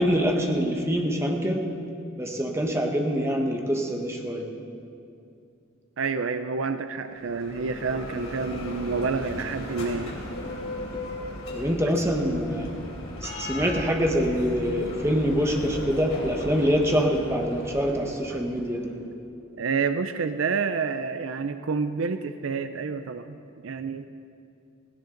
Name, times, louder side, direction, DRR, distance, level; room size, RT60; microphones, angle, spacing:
voice 1, 0.0-1.6 2.2-4.5 11.5-12.7 13.2-18.9, equal, 10° right, 2 dB, 1.3 m, -25 dB
voice 2, 6.0-10.2 19.6-23.4 23.6-24.1, right 5 dB, 65° right, 10 dB, 0.5 m, -28 dB
Bell, 7.1-18.9, left 1 dB, 70° left, 3.3 m, -37 dB
17.0 x 17.0 x 3.9 m, 2.6 s
head